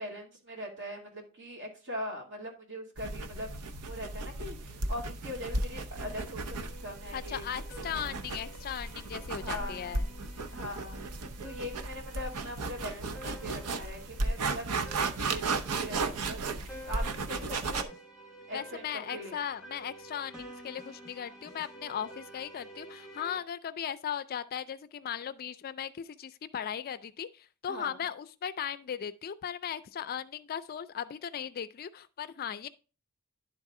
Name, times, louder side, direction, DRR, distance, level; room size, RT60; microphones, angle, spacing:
voice 1, 0.0-3.5 3.9-8.2 9.4-10.0 10.5-18.0 18.5-19.4 27.7-28.0, left 1 dB, 55° right, 2.4 m, -42 dB
sound 1, 3.0-17.8, right 3 dB, 80° right, 0.7 m, -35 dB
sound 2, 6.0-23.4, right 1 dB, 5° right, 1.7 m, -51 dB
voice 2, 7.1-10.0 10.5-10.6 18.5-32.7, left 8 dB, 45° left, 0.4 m, -37 dB
11.0 x 4.0 x 3.6 m
head